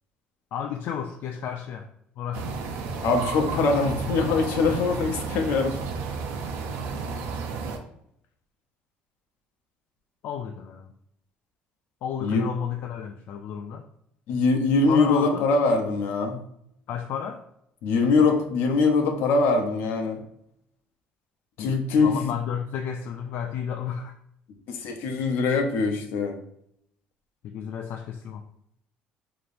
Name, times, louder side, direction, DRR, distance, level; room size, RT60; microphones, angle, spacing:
voice 1, 0.5-1.9 2.2-2.6 10.2-10.9 12.0-13.9 14.9-15.5 16.9-17.4 21.6-24.1 27.4-28.4, left 8 dB, 60° left, 4 dB, 0.3 m, -32 dB
sound 1, 2.3-7.8, right 5 dB, 80° right, 0.5 m, -32 dB
voice 2, 3.0-5.8 12.2-12.5 14.3-16.4 17.8-20.2 21.6-22.3 24.7-26.4, left 4 dB, 75° left, 4 dB, 0.7 m, -23 dB
5.0 x 3.0 x 2.6 m, 0.74 s
cardioid pair, 130°, 4 cm